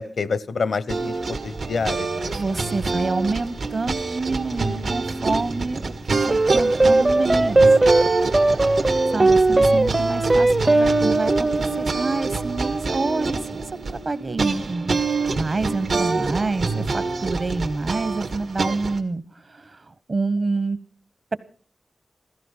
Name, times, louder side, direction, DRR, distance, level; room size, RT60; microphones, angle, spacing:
voice 1, 0.0-2.6 8.4-8.7, left 4 dB, 80° left, 18 dB, 0.7 m, -28 dB
sound 1, 0.9-19.0, right 3 dB, 80° right, 1.8 m, -26 dB
voice 2, 2.3-7.6 9.1-19.2 19.5-20.8, right 3 dB, 50° right, 15 dB, 1.1 m, -28 dB
sound 2, 6.3-14.9, right 2 dB, 35° right, 0.7 m, -20 dB
16.0 x 14.5 x 5.6 m, 0.40 s
wide cardioid pair, 105°, 0 cm